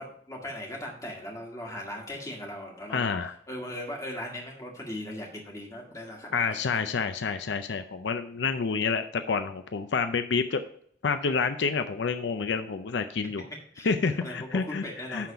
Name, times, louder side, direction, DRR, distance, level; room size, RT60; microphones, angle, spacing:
voice 1, 0.0-6.6 13.5-15.3, left 1 dB, 20° left, -1 dB, 1.9 m, -39 dB
voice 2, 2.9-3.3 6.3-10.6 11.0-13.4 13.8-14.8 15.1-15.3, left 5 dB, 80° left, 9 dB, 0.5 m, -28 dB
10.0 x 4.0 x 5.6 m, 0.62 s
head